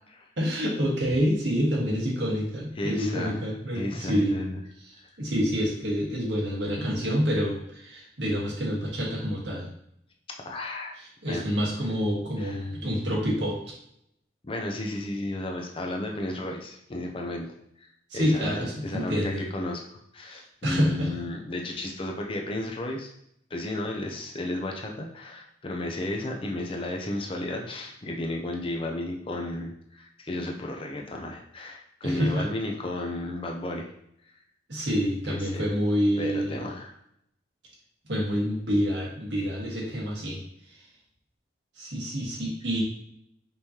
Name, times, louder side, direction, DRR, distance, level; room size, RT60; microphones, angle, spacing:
voice 1, 0.4-4.4 5.2-9.7 11.2-13.6 18.1-19.4 20.3-21.3 32.0-32.5 34.7-36.5 38.0-40.4 41.8-42.8, equal, 85° right, -3 dB, 1.5 m, -27 dB
voice 2, 2.8-4.6 10.3-10.9 11.3-11.5 12.4-12.6 14.4-17.5 18.1-23.1 23.5-33.9 35.3-35.7 36.2-36.9, left 1 dB, 30° left, 0 dB, 0.5 m, -33 dB
5.3 x 3.1 x 2.8 m, 0.72 s
head